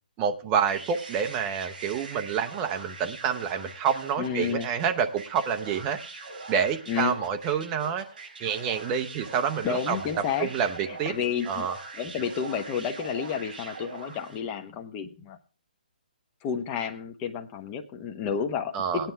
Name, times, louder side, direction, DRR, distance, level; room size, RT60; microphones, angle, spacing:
voice 1, 0.2-6.0 6.5-8.1 8.4-10.0 10.4-11.1 11.5-11.8 18.7-19.1, right 7 dB, 15° right, 6 dB, 0.7 m, -28 dB
sound 1, 0.6-14.5, right 3 dB, 60° right, 5.0 m, -42 dB
voice 2, 4.2-4.7 6.9-7.1 9.6-10.5 10.9-11.7 11.9-15.4 16.4-19.1, left 7 dB, 20° left, 6 dB, 1.0 m, -31 dB
17.5 x 9.3 x 3.4 m, 0.35 s
hypercardioid pair, 160°, 5 cm